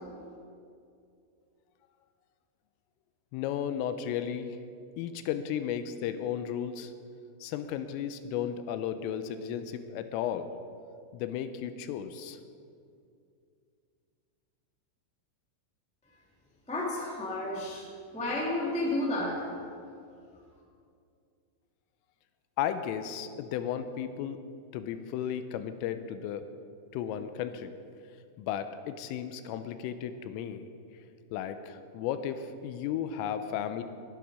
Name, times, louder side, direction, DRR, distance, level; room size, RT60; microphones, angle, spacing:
voice 1, 3.3-4.6 5.0-6.9 7.4-10.5 11.1-12.4 22.6-24.4 24.7-26.5 26.9-27.7 28.4-30.7 31.3-33.8, left 9 dB, 85° left, 10 dB, 3.2 m, -34 dB
voice 2, 16.7-17.8 18.1-19.4, left 1 dB, 5° left, -4 dB, 0.6 m, -31 dB
19.5 x 11.0 x 5.0 m, 2.4 s
omnidirectional pair, 5.9 m